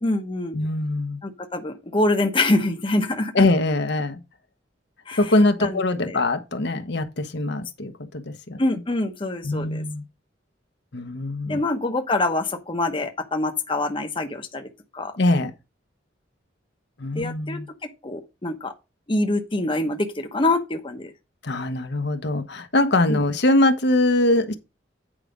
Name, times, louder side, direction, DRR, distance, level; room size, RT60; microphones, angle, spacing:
voice 1, 0.0-0.6 1.2-3.4 5.1-5.2 5.6-6.2 8.6-9.8 11.5-14.7 14.9-15.2 17.1-17.6 18.0-18.7 19.1-21.1 23.1-23.2, left 2 dB, 30° left, 1.0 m, -25 dB
voice 2, 0.5-1.2 3.3-4.2 5.2-8.6 9.4-10.0 10.9-11.6 15.2-15.5 17.0-17.7 21.4-24.6, left 2 dB, 65° left, 1.1 m, -22 dB
8.9 x 4.9 x 5.1 m
head